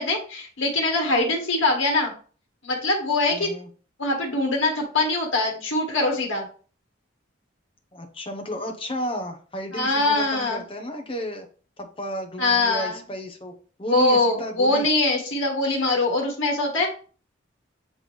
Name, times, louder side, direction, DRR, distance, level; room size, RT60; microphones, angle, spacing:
voice 1, 0.0-2.1 2.6-3.5 4.0-6.5 9.7-10.6 12.4-13.0 13.9-16.9, left 2 dB, 85° left, 1 dB, 1.5 m, -23 dB
voice 2, 3.3-3.7 7.9-11.5 11.8-13.5 13.8-14.9, equal, 25° left, 4 dB, 1.0 m, -33 dB
7.8 x 3.6 x 3.3 m, 0.40 s
head